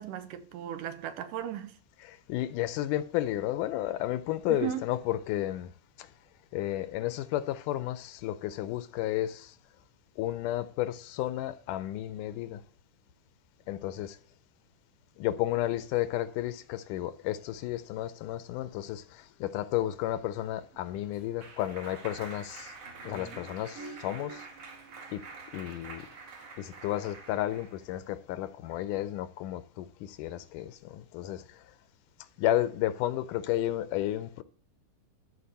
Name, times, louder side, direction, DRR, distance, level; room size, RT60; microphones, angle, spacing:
voice 1, 0.0-1.7 4.5-4.8, right 10 dB, 75° right, 2.4 m, -36 dB
voice 2, 2.1-5.7 6.5-9.5 10.2-12.6 13.7-14.2 15.2-22.7 23.0-24.4 25.1-25.2 25.5-26.1 26.6-31.4 32.4-34.4, left 13 dB, 80° left, 2.1 m, -32 dB
Clapping, 20.6-27.8, right 4 dB, 50° right, 2.7 m, -46 dB
13.0 x 4.7 x 6.6 m
omnidirectional pair, 3.8 m